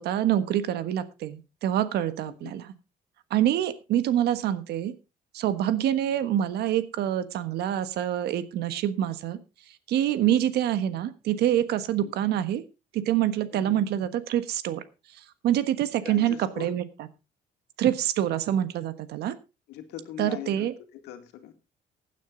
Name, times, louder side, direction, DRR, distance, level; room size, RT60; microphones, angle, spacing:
voice 1, 0.0-2.7 3.3-4.9 5.3-9.4 9.9-12.6 12.9-14.8 15.4-16.8 17.8-19.3 20.2-20.7, right 11 dB, 75° right, 13 dB, 1.4 m, -26 dB
voice 2, 2.2-2.6 6.0-6.1 10.2-10.6 12.0-12.1 13.5-13.8 16.0-16.7 19.7-21.5, left 11 dB, 85° left, 7 dB, 2.2 m, -41 dB
16.0 x 9.3 x 3.9 m, 0.29 s
cardioid pair, 110°, 17 cm